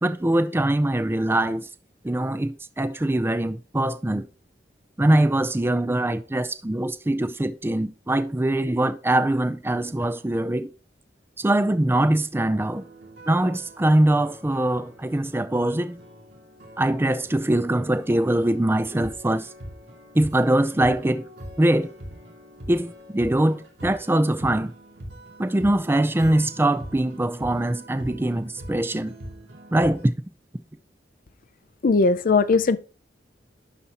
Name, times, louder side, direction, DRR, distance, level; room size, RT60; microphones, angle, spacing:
voice 1, 0.0-1.6 2.0-4.3 5.0-10.7 11.4-12.8 13.3-16.0 16.8-19.5 20.1-21.2 21.6-21.9 22.7-24.7 25.4-29.1 29.7-30.1, right 1 dB, 15° right, 0.4 m, -22 dB
sound 1, 12.7-30.0, equal, 70° right, 2.2 m, -43 dB
voice 2, 31.8-32.8, left 4 dB, 50° left, 0.5 m, -19 dB
11.0 x 4.1 x 2.9 m
head